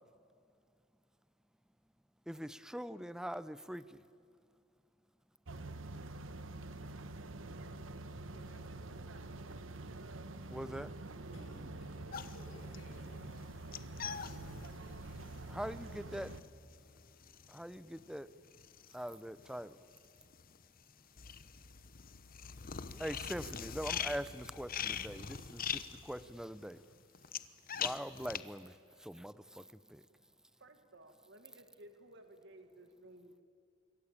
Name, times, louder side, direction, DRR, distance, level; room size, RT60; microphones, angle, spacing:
voice 1, 2.3-4.0 10.5-10.9 15.5-16.3 17.5-18.3 18.9-19.8 23.0-26.8 27.7-30.0, equal, 5° right, 16 dB, 0.6 m, -43 dB
sound 1, 5.5-16.4, right 2 dB, 85° right, 1.4 m, -46 dB
voice 2, 8.1-8.9 11.3-13.3, equal, 85° left, 0 dB, 5.7 m, -58 dB
sound 2, 12.1-19.6 19.9-28.4, left 8 dB, 45° left, 1.0 m, -43 dB
voice 3, 30.6-33.4, right 1 dB, 65° right, 6 dB, 1.8 m, -57 dB
26.5 x 23.0 x 8.8 m, 2.4 s
head